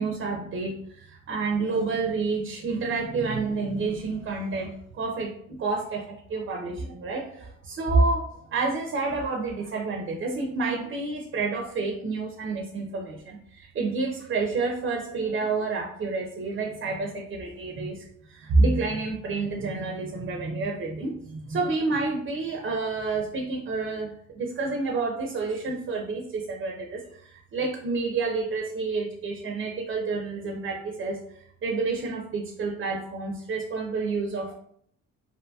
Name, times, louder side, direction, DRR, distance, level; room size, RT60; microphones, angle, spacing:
voice 1, 0.0-8.2 8.5-34.5, right 3 dB, 45° right, 1 dB, 0.4 m, -29 dB
2.6 x 2.6 x 2.2 m, 0.67 s
cardioid pair, 105°, 30 cm